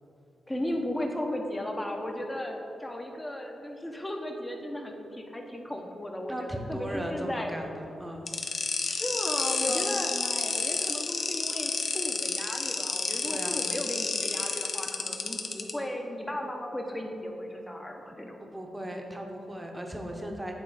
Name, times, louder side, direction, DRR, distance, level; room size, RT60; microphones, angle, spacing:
voice 1, 0.5-7.6 8.8-18.4, left 1 dB, 15° left, 2 dB, 0.9 m, -35 dB
voice 2, 6.3-8.3 9.7-9.9 13.2-13.6 18.4-20.5, right 1 dB, 10° right, 2 dB, 0.9 m, -37 dB
sound 1, 8.3-15.7, left 4 dB, 60° left, 0.6 m, -30 dB
8.5 x 3.6 x 4.9 m, 2.9 s
cardioid pair, 80°, 0 cm